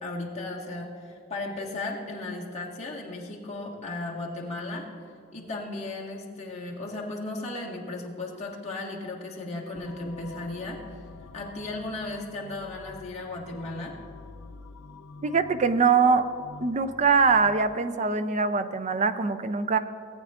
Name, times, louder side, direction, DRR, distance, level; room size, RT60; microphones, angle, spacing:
voice 1, 0.0-4.9 5.3-11.0 11.3-14.0, left 2 dB, 30° left, -3 dB, 1.6 m, -35 dB
sound 1, 9.7-17.8, left 3 dB, 85° left, 0.6 m, -47 dB
voice 2, 15.2-16.3 16.6-19.8, right 5 dB, 30° right, 10 dB, 0.4 m, -23 dB
18.0 x 9.0 x 2.5 m, 2.4 s
head